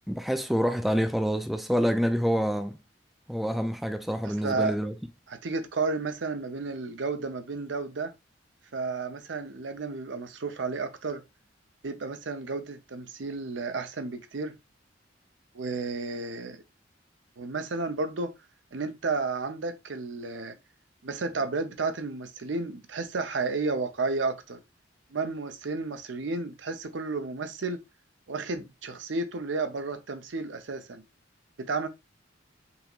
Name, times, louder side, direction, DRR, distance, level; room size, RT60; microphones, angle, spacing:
voice 1, 0.1-2.8 3.3-4.9, equal, ahead, 0.3 m, -27 dB
voice 2, 4.2-4.7 5.3-8.1 8.7-11.2 11.8-14.6 15.5-16.6 17.4-18.3 18.7-20.6 21.0-24.6 25.1-27.8 28.3-31.0 31.6-31.9, right 3 dB, 80° right, 0.6 m, -32 dB
5.5 x 2.9 x 2.4 m
head